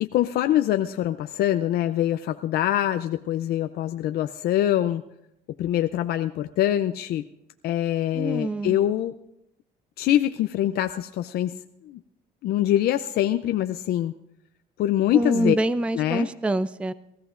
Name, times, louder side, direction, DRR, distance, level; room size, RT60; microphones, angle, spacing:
voice 1, 0.0-5.0 5.6-7.2 7.6-9.1 10.0-11.5 11.8-12.0 12.4-14.1 14.8-15.6 15.9-16.3, left 12 dB, 70° left, 8 dB, 0.5 m, -24 dB
voice 2, 8.1-8.8 15.1-16.9, right 1 dB, 5° right, 15 dB, 0.4 m, -25 dB
22.0 x 14.5 x 2.5 m, 0.83 s
cardioid pair, 110°, 17 cm